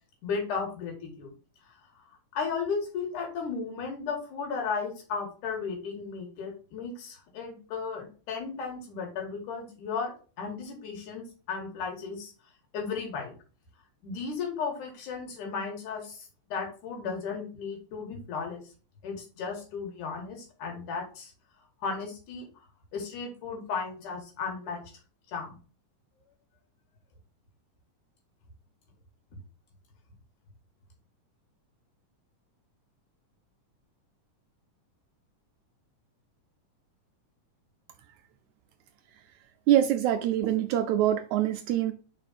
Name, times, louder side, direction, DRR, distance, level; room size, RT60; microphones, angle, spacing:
voice 1, 0.2-1.3 2.3-10.1 10.4-12.3 12.7-13.3 14.0-18.6 19.0-21.3 21.8-22.4 22.9-24.8 25.3-25.6, left 5 dB, 75° left, 3.2 m, -35 dB
voice 2, 39.7-41.9, right 11 dB, 80° right, 1.8 m, -24 dB
4.9 x 4.8 x 4.1 m
omnidirectional pair, 3.7 m